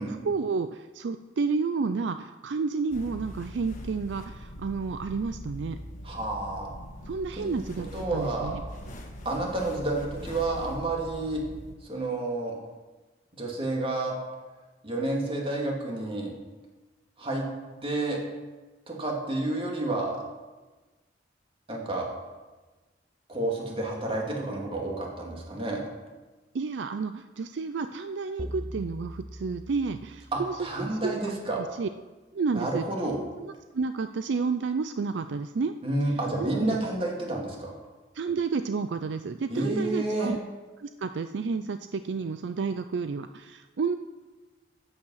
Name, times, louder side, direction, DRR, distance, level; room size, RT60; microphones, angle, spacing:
voice 1, 0.0-5.8 7.1-8.6 26.5-31.9 32.3-33.1 33.4-35.7 36.4-36.8 38.1-40.4 40.8-44.0, right 4 dB, 70° right, 10 dB, 0.4 m, -31 dB
sound 1, 2.9-11.7, equal, 45° left, 1.7 m, -42 dB
voice 2, 6.0-6.7 7.4-7.7 7.9-8.5 9.2-11.4 11.9-12.6 13.3-14.2 14.8-16.3 17.2-17.5 17.8-18.2 18.9-20.2 21.7-22.1 23.3-25.8 30.3-31.6 32.5-33.2 35.8-37.7 39.5-40.3, right 2 dB, 30° right, -1 dB, 2.6 m, -30 dB
sound 2, 28.4-30.9, equal, ahead, 0.5 m, -41 dB
12.5 x 8.8 x 5.7 m, 1.2 s
head